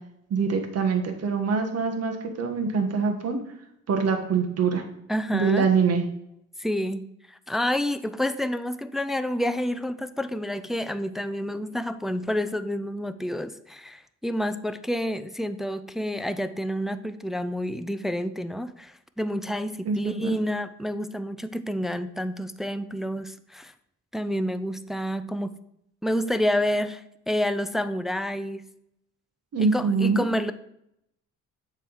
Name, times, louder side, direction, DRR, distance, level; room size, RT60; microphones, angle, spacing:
voice 1, 0.3-3.4 3.9-4.8 5.3-6.0 19.8-20.3 29.5-30.3, right 5 dB, 55° right, 4 dB, 1.4 m, -24 dB
voice 2, 5.1-5.7 6.6-23.7 24.1-25.6 26.0-28.6 29.6-30.5, equal, ahead, 11 dB, 0.4 m, -29 dB
7.5 x 3.6 x 6.2 m, 0.78 s
cardioid pair, 90°, 30 cm